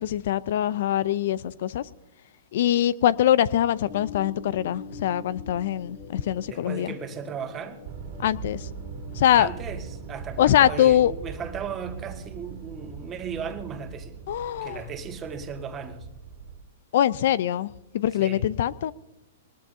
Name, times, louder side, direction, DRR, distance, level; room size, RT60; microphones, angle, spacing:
voice 1, 0.0-1.9 2.5-6.9 8.2-8.7 9.1-9.5 10.4-11.1 14.3-14.8 16.9-18.9, left 11 dB, 65° left, 0.6 m, -23 dB
sound 1, 3.9-14.5, left 4 dB, 45° left, 2.4 m, -46 dB
voice 2, 6.4-7.8 9.3-14.2 14.6-16.1 18.2-18.4, right 6 dB, 25° right, 1.7 m, -36 dB
sound 2, 7.8-16.6, right 6 dB, 55° right, 2.1 m, -40 dB
22.5 x 19.5 x 2.8 m
hypercardioid pair, 130°, 0 cm